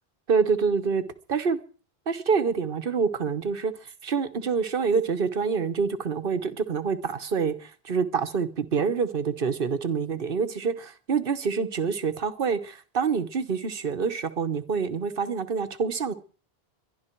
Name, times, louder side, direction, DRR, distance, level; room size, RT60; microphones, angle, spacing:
voice 1, 0.3-1.6 2.1-3.7 4.0-16.1, right 5 dB, 60° right, 1.3 m, -26 dB
22.0 x 11.5 x 4.6 m
omnidirectional pair, 1.0 m